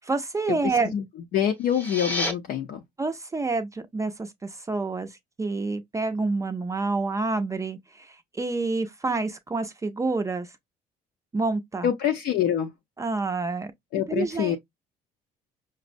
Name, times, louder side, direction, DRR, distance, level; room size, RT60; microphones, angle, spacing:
voice 1, 0.1-0.9 3.0-10.5 11.3-11.9 13.0-13.7 14.1-14.6, right 3 dB, 20° right, 0.4 m, -28 dB
voice 2, 1.3-2.8 11.8-12.7 13.9-14.6, left 9 dB, 70° left, 0.6 m, -25 dB
sound 1, 1.5-2.3, left 1 dB, 10° left, 0.9 m, -30 dB
5.2 x 2.0 x 2.5 m
cardioid pair, 110°, 17 cm